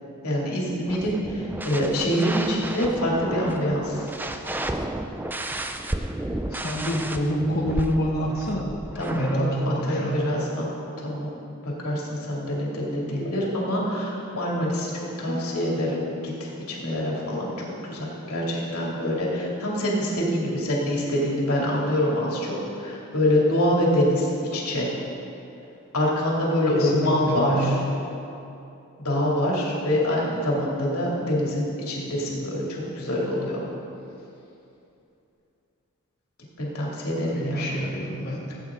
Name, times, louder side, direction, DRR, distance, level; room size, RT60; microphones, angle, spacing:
voice 1, 0.2-4.1 8.9-10.7 11.0-11.3 11.6-24.9 25.9-27.8 29.0-33.6 36.6-37.8, left 1 dB, 85° left, -4 dB, 2.6 m, -25 dB
sound 1, 0.9-9.4, right 1 dB, 10° right, 0.4 m, -33 dB
voice 2, 6.5-8.7 9.1-10.2 26.7-27.8 37.2-38.5, equal, 45° left, -5 dB, 1.2 m, -27 dB
Harp, 15.3-19.4 19.7-20.2 20.7-21.0, left 5 dB, 80° right, 1.7 m, -44 dB
16.5 x 8.4 x 3.7 m, 2.8 s
head